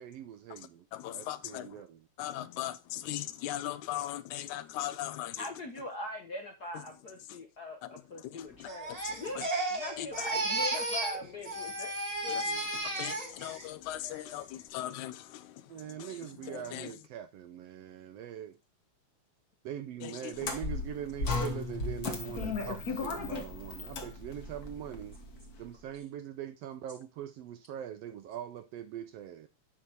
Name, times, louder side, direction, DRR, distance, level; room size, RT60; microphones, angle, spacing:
voice 1, 0.0-2.1 15.7-18.6 19.6-25.2 25.6-29.5, right 10 dB, 75° right, 1.5 m, -42 dB
voice 2, 0.9-1.8 2.2-5.5 7.3-7.4 7.8-7.9 8.2-8.7 9.1-9.5 10.0-10.1 12.3-12.5 12.8-15.7 16.0-16.1 16.5-16.9 20.0-20.3, left 13 dB, 85° left, 2.1 m, -39 dB
voice 3, 5.4-11.9 12.2-12.6 12.9-13.1, left 2 dB, 60° left, 1.0 m, -41 dB
Crying sobbing, 8.7-11.2 11.4-13.6 14.0-14.4, right 2 dB, 40° right, 0.5 m, -34 dB
sound 1, 20.4-25.6, left 3 dB, 45° left, 1.4 m, -36 dB
8.6 x 5.8 x 4.6 m
omnidirectional pair, 3.3 m